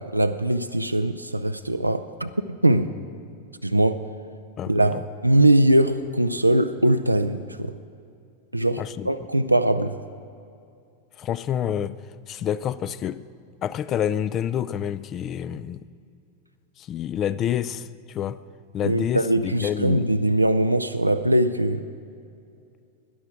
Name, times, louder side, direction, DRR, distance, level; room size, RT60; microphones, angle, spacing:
voice 1, 0.0-2.9 3.6-4.0 4.7-7.7 8.5-10.0 18.9-21.9, right 1 dB, 85° right, 0.4 m, -21 dB
voice 2, 4.6-5.0 8.8-9.1 11.2-12.0 12.3-13.2 13.6-15.9 16.8-18.4 18.7-20.0, left 10 dB, 30° left, 0.3 m, -28 dB
12.5 x 10.0 x 6.1 m
figure-of-eight pair, 90°, 0 cm